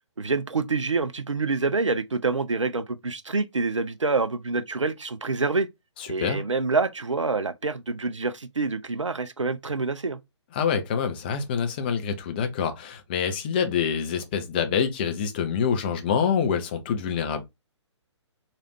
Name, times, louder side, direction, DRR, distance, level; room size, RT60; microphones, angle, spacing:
voice 1, 0.2-5.7 6.1-10.2, right 3 dB, 85° right, 0.4 m, -26 dB
voice 2, 6.0-6.4 10.5-17.4, left 7 dB, 20° left, 0.4 m, -26 dB
3.1 x 2.4 x 2.9 m
figure-of-eight pair, 135°, 15 cm